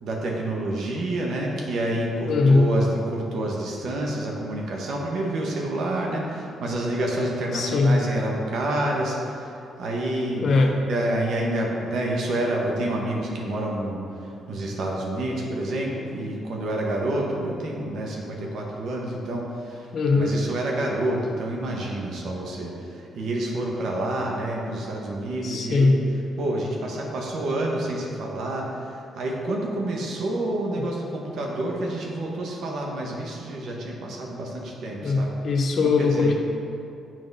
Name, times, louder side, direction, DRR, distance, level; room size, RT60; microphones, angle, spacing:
voice 1, 0.0-19.9 20.1-26.0 26.4-35.3 35.8-36.3, right 1 dB, 70° right, -1 dB, 1.1 m, -28 dB
voice 2, 2.2-2.7 7.5-8.0 10.4-10.7 19.9-20.3 25.4-26.0 30.7-30.8 35.0-36.3, left 3 dB, 55° left, 2 dB, 0.9 m, -20 dB
7.5 x 3.9 x 5.4 m, 2.6 s
cardioid pair, 90°, 0 cm